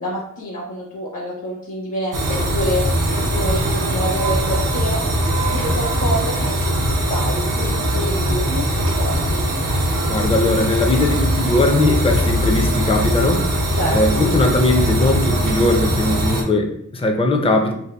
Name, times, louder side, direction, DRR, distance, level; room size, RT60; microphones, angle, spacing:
voice 1, 0.0-2.8 3.2-5.1 5.4-6.8 7.1-9.5 13.7-14.3, equal, 60° left, -5 dB, 0.8 m, -27 dB
sound 1, 2.1-16.4, right 1 dB, 85° right, 0.5 m, -20 dB
voice 2, 10.1-13.6 13.9-17.7, left 2 dB, 20° left, 3 dB, 0.4 m, -19 dB
2.7 x 2.4 x 2.2 m, 0.72 s
wide cardioid pair, 45°, 32 cm